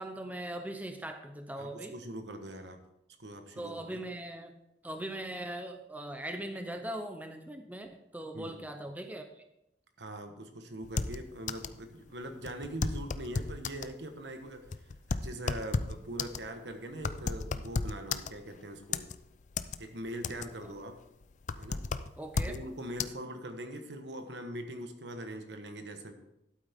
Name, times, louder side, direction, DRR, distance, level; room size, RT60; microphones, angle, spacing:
voice 1, 0.0-2.0 3.6-4.5 4.8-9.4 22.2-22.6, right 1 dB, 10° right, 6 dB, 0.6 m, -40 dB
voice 2, 1.6-2.8 3.2-4.0 8.3-8.6 10.0-14.6 15.1-19.1 19.8-21.0 21.6-21.8 22.4-26.1, right 1 dB, 75° right, 6 dB, 1.3 m, -42 dB
sound 1, 10.8-11.8 12.1-12.2 12.5-13.9 14.5-18.6 18.9-19.8 20.1-20.7 21.0-22.6 23.0-23.1, left 4 dB, 40° left, 0.4 m, -34 dB
12.0 x 8.5 x 3.6 m, 0.85 s
head